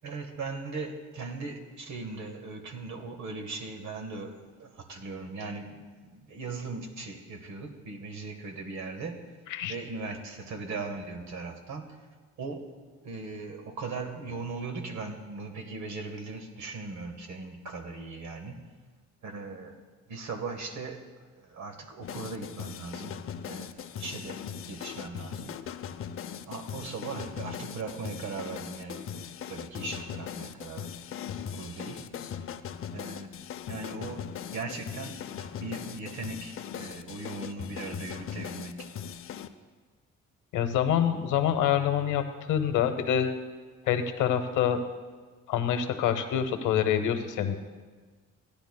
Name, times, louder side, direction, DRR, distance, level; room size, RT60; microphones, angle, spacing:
voice 1, 0.0-5.9 6.1-9.3 9.7-12.0 12.4-12.7 13.0-18.6 19.2-19.8 20.1-21.1 21.4-24.4 24.7-25.6 26.5-30.9 31.4-32.1 32.9-38.9, right 3 dB, 70° right, 6 dB, 1.4 m, -39 dB
sound 1, 22.0-39.5, left 8 dB, 45° left, 0.5 m, -39 dB
voice 2, 40.5-43.3 43.9-44.8 45.5-47.6, left 9 dB, 85° left, 8 dB, 0.8 m, -26 dB
16.0 x 10.0 x 2.2 m, 1.4 s
cardioid pair, 90°, 30 cm